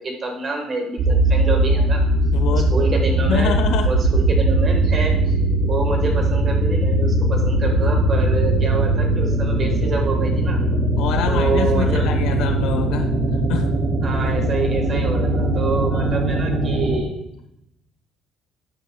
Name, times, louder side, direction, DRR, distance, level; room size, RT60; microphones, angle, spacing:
voice 1, 0.0-2.0 2.5-3.5 3.8-5.4 5.6-10.6 11.3-12.1 14.0-17.2, right 3 dB, 30° right, 3 dB, 1.5 m, -27 dB
sound 1, 1.0-17.0, right 1 dB, 90° right, 3.5 m, -19 dB
voice 2, 2.3-2.7 3.2-3.9 11.0-13.1 13.5-13.7 15.9-16.1, left 7 dB, 85° left, 5 dB, 1.1 m, -26 dB
12.0 x 9.2 x 2.3 m, 0.81 s
cardioid pair, 175°, 0 cm